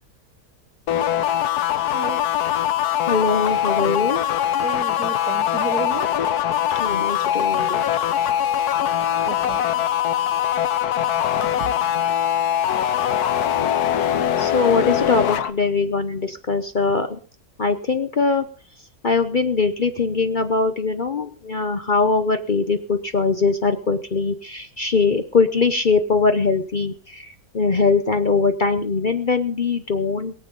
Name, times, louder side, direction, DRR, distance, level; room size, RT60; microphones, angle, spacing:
sound 1, 0.9-15.5, left 10 dB, 85° left, 1.4 m, -22 dB
voice 1, 3.1-4.2 6.8-7.8 14.4-17.2 17.6-18.4 19.0-30.3, left 4 dB, 40° left, 9 dB, 0.8 m, -21 dB
voice 2, 4.6-6.1 9.2-9.7 11.0-11.1 11.6-11.7, right 5 dB, 75° right, 13 dB, 1.6 m, -31 dB
22.0 x 7.4 x 5.3 m, 0.43 s
omnidirectional pair, 1.6 m